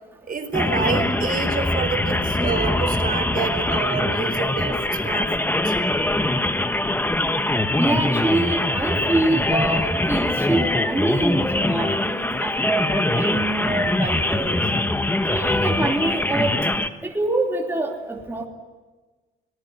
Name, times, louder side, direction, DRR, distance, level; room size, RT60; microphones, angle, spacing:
voice 1, 0.3-5.7, right 4 dB, 45° right, 8 dB, 4.2 m, -28 dB
sound 1, 0.5-16.9, left 1 dB, 10° left, 1.4 m, -23 dB
voice 2, 7.8-14.6 15.3-16.6 17.0-18.5, right 2 dB, 10° right, 0 dB, 3.0 m, -25 dB
25.5 x 19.5 x 9.5 m, 1.3 s
cardioid pair, 90°, 20 cm